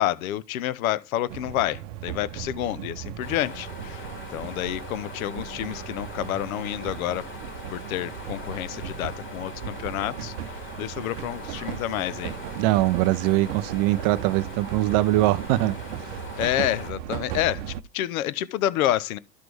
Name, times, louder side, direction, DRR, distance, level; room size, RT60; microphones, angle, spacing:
voice 1, 0.0-4.0 4.3-7.2 7.7-10.3 10.8-12.4 16.4-19.2, left 13 dB, 55° left, 0.8 m, -28 dB
sound 1, 1.3-17.8, right 10 dB, 50° right, 0.8 m, -37 dB
sound 2, 3.2-16.9, left 3 dB, 25° left, 1.9 m, -42 dB
voice 2, 12.6-15.8, right 17 dB, 25° right, 0.4 m, -22 dB
13.0 x 5.9 x 3.3 m
hypercardioid pair, 100°, 50 cm